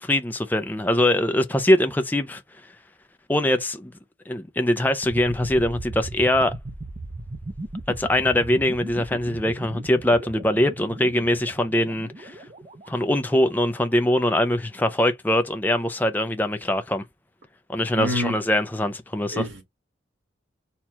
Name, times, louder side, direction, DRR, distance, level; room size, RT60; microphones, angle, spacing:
voice 1, 0.0-2.4 3.3-3.9 4.3-6.5 7.9-12.4 12.9-17.0 17.7-19.4, left 1 dB, 10° left, 0.4 m, -22 dB
sound 1, 5.0-13.9, right 1 dB, 35° right, 0.6 m, -37 dB
voice 2, 18.0-18.4 19.3-19.6, left 1 dB, 85° right, 1.6 m, -27 dB
4.4 x 2.3 x 4.2 m
head